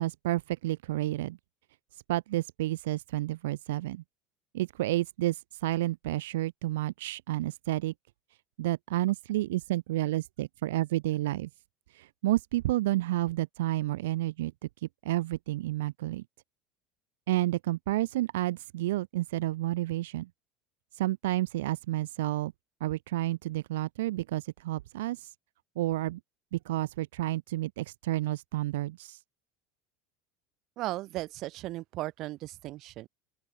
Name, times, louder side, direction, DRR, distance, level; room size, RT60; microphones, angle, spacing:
voice 1, 0.0-1.4 1.9-4.0 4.5-7.9 8.6-11.5 11.9-14.5 14.8-16.2 17.3-20.3 20.9-22.5 22.8-25.3 25.8-26.2 26.5-29.2, right 16 dB, 85° right, 2.8 m, -30 dB
voice 2, 30.8-33.1, right 17 dB, 60° right, 5.0 m, -36 dB
open air
hypercardioid pair, 90°, 0 cm